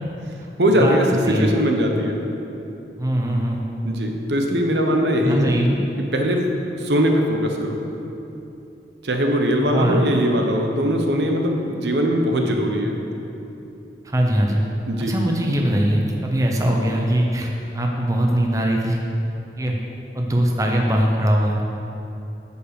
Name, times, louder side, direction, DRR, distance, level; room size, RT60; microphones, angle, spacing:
voice 1, 0.6-2.2 3.8-5.6 6.0-6.5 6.8-7.8 9.0-13.0 14.9-15.1, equal, 80° right, 2 dB, 1.0 m, -20 dB
voice 2, 3.0-3.6 5.2-5.8 9.7-10.1 14.0-14.6 15.0-19.0 19.6-19.8 20.1-21.6, right 1 dB, 20° right, 0 dB, 0.7 m, -21 dB
9.1 x 5.4 x 6.8 m, 2.9 s
head